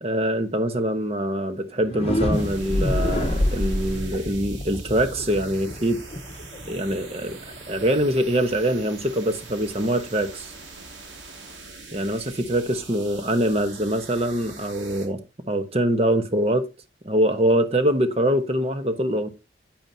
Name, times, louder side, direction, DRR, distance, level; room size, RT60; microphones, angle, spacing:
voice 1, 0.0-6.0 6.7-7.4 7.7-10.5 11.9-16.7 17.0-19.3, right 1 dB, 35° right, 1.1 m, -24 dB
sound 1, 1.8-7.6, left 1 dB, 35° left, 1.0 m, -27 dB
sound 2, 2.3-15.1, right 3 dB, 85° right, 2.7 m, -43 dB
8.8 x 8.8 x 2.8 m
head